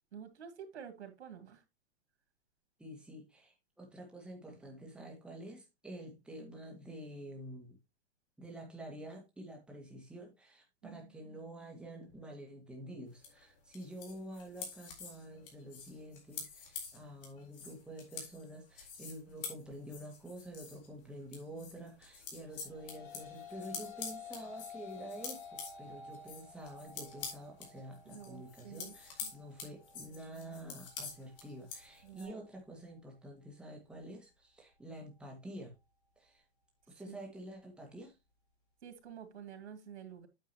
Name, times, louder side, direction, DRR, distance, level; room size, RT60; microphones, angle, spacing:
voice 1, 0.1-1.6 10.8-11.4 28.1-28.9 29.2-29.3 32.0-32.3 37.1-37.2 38.8-40.3, right 8 dB, 90° right, 2.5 m, -49 dB
voice 2, 2.8-7.8 8.4-35.7 36.2-36.4 36.9-38.1, right 1 dB, 5° right, 2.1 m, -48 dB
sound 1, 13.2-20.9 21.2-32.3, left 5 dB, 50° left, 4.1 m, -47 dB
sound 2, 22.4-31.6, left 6 dB, 30° left, 5.8 m, -51 dB
9.1 x 7.4 x 3.0 m
hypercardioid pair, 160°, 33 cm